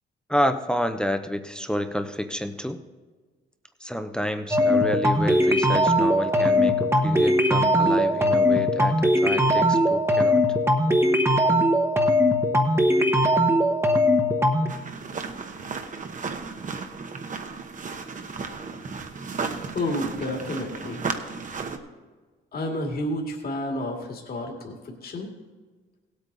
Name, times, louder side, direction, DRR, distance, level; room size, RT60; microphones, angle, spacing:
voice 1, 0.3-2.8 3.8-10.4, equal, 5° left, 7 dB, 0.8 m, -29 dB
sound 1, 4.5-14.7, equal, 15° right, 1.2 m, -20 dB
sound 2, 14.7-21.8, right 4 dB, 40° right, 1.1 m, -34 dB
voice 2, 19.7-21.0 22.5-25.3, left 1 dB, 50° left, 1 dB, 2.2 m, -30 dB
17.0 x 8.3 x 4.0 m, 1.4 s
cardioid pair, 90°, 20 cm